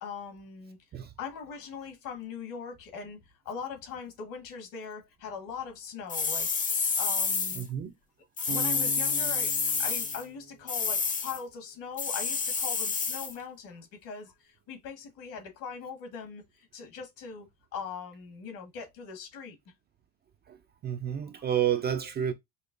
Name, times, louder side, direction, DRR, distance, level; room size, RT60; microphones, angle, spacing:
voice 1, 0.0-0.8 1.2-3.2 3.4-6.5 7.0-7.6 8.5-17.5 17.7-19.6, left 6 dB, 60° left, 1.5 m, -41 dB
sound 1, 6.1-7.6 8.4-10.2 10.7-11.4 12.0-13.3, left 5 dB, 20° left, 0.6 m, -29 dB
voice 2, 7.6-7.9 20.5-20.6 20.8-22.3, right 9 dB, 30° right, 0.4 m, -30 dB
Bass guitar, 8.5-11.5, right 10 dB, 85° right, 0.6 m, -43 dB
5.2 x 2.1 x 2.5 m
supercardioid pair, 90°, 36 cm